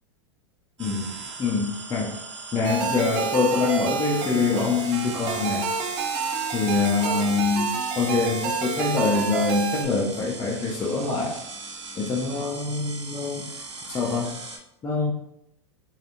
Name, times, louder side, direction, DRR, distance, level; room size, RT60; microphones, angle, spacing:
voice 1, 0.8-1.1 1.4-2.2 2.5-5.6 6.5-7.7 8.0-11.4 12.0-13.5 13.9-14.3 14.8-15.1, left 4 dB, 20° left, -4 dB, 0.5 m, -25 dB
sound 1, 0.8-14.6, right 3 dB, 75° right, 0.7 m, -39 dB
sound 2, 2.6-9.8, right 6 dB, 40° right, 0.5 m, -29 dB
3.4 x 2.3 x 2.5 m, 0.80 s
hypercardioid pair, 95°, 15 cm